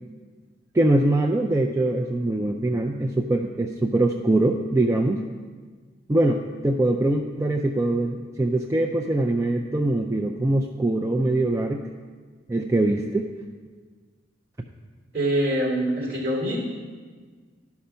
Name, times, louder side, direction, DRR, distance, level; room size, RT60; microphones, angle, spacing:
voice 1, 0.7-5.2 6.1-11.8 12.5-13.3, right 2 dB, 15° right, 1 dB, 0.3 m, -23 dB
voice 2, 15.1-16.6, right 1 dB, 50° right, -2 dB, 2.9 m, -24 dB
11.5 x 5.9 x 5.5 m, 1.5 s
head